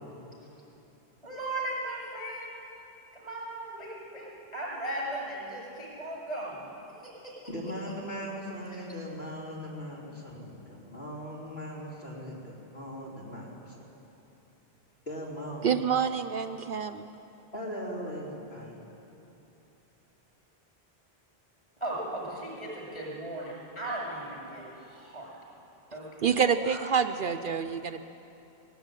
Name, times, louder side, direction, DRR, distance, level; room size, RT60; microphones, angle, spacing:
voice 1, 1.2-2.5 3.1-6.6 7.0-7.3 21.8-25.3 25.9-26.3 26.6-26.8, right 1 dB, 35° left, -3 dB, 7.1 m, -37 dB
voice 2, 7.5-13.8 15.1-15.7 17.5-18.8, equal, 70° left, -5 dB, 3.7 m, -39 dB
voice 3, 15.6-17.1 26.2-28.0, right 7 dB, 60° right, 8 dB, 0.7 m, -27 dB
18.0 x 17.5 x 9.0 m, 3.0 s
omnidirectional pair, 1.1 m